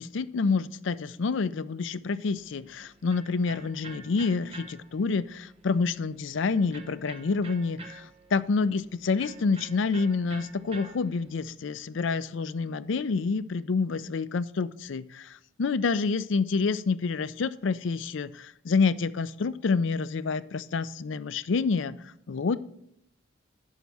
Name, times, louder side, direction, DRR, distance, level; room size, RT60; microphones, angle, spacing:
voice 1, 0.0-22.6, left 4 dB, 65° left, 15 dB, 0.4 m, -28 dB
Electric guitar, 2.4-11.4, right 3 dB, 30° right, 0.9 m, -49 dB
11.0 x 4.6 x 6.2 m, 0.72 s
head